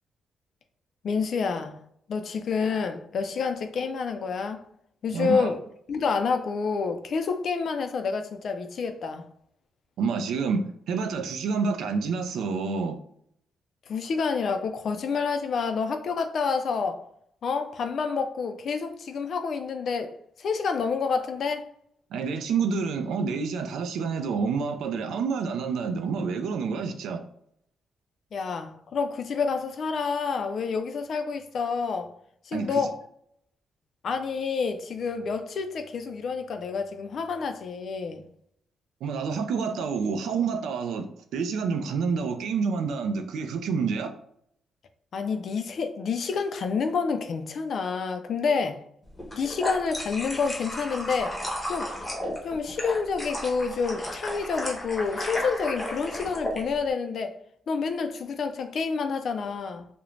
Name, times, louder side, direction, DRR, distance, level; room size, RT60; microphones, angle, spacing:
voice 1, 1.0-1.8 2.1-4.6 5.0-5.6 5.9-9.2 13.9-17.0 17.4-20.1 20.4-21.6 28.3-32.1 32.5-33.0 34.0-38.2 45.1-48.8 49.3-51.4 51.7-51.9 52.4-57.3 57.7-59.9, left 5 dB, 55° left, 0.3 m, -28 dB
voice 2, 5.1-5.5 10.0-13.0 22.1-27.2 32.5-32.9 39.0-41.1 41.3-44.1, right 5 dB, 85° right, 0.3 m, -28 dB
sound 1, 49.2-56.6, left 1 dB, 15° left, 0.7 m, -34 dB
2.4 x 2.0 x 3.1 m
cardioid pair, 140°, 0 cm